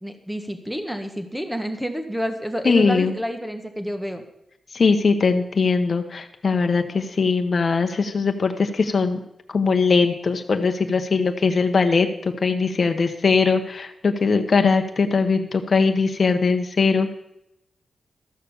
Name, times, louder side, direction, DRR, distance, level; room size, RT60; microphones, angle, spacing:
voice 1, 0.0-4.2, equal, ahead, 6 dB, 1.6 m, -29 dB
voice 2, 2.6-3.1 4.7-9.2 9.5-17.1, left 4 dB, 50° left, 5 dB, 1.0 m, -20 dB
13.5 x 6.6 x 7.0 m, 0.84 s
cardioid pair, 75°, 0 cm